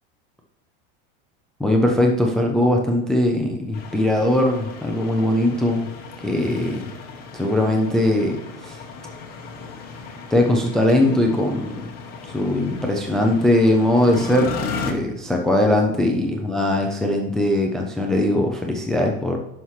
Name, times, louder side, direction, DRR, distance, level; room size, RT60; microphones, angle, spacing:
voice 1, 1.6-5.9 6.2-6.9 7.3-8.8 10.3-11.8 12.2-14.5 14.8-19.4, left 1 dB, ahead, 2 dB, 0.4 m, -20 dB
sound 1, 3.7-14.9, left 5 dB, 30° left, 1.1 m, -35 dB
11.0 x 5.8 x 3.1 m, 0.89 s
supercardioid pair, 155°, 30 cm